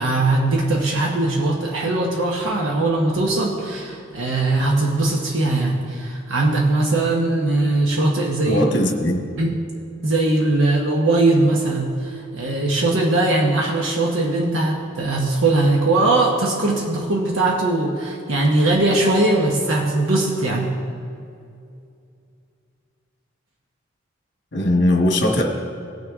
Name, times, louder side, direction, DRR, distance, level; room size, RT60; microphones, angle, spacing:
voice 1, 0.0-8.6 9.4-9.6 10.0-20.8, right 2 dB, 90° right, -2 dB, 1.1 m, -20 dB
voice 2, 8.5-9.2 24.5-25.4, left 1 dB, 60° left, 2 dB, 1.5 m, -19 dB
18.5 x 6.4 x 3.6 m, 2.5 s
head